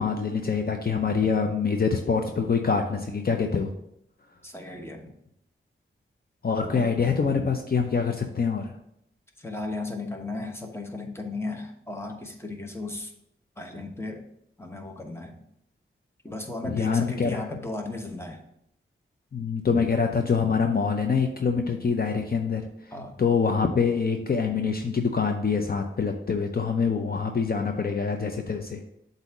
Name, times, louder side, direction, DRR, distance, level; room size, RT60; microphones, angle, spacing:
voice 1, 0.0-3.7 6.4-8.7 16.6-17.4 19.3-22.6 23.2-28.8, left 5 dB, 45° left, 4 dB, 0.6 m, -25 dB
voice 2, 4.4-5.1 6.6-6.9 9.4-13.1 13.6-14.3 14.6-15.4 16.2-18.4 22.9-23.2, left 2 dB, 10° left, 3 dB, 1.1 m, -35 dB
7.9 x 2.7 x 5.9 m, 0.75 s
wide cardioid pair, 80°, 21 cm